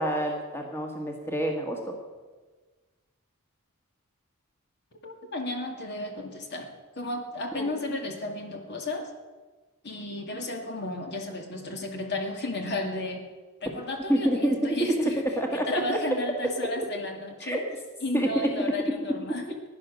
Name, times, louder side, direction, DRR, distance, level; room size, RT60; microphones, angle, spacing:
voice 1, 0.0-2.0 7.5-7.7 14.1-14.8 15.4-15.8 17.4-17.6 18.1-18.7, right 1 dB, 10° left, 1 dB, 1.6 m, -27 dB
voice 2, 5.0-6.7 7.0-9.1 9.8-13.2 13.6-15.2 15.5-17.6 18.0-19.6, left 2 dB, 50° left, 3 dB, 2.1 m, -33 dB
16.5 x 10.5 x 6.4 m, 1.3 s
head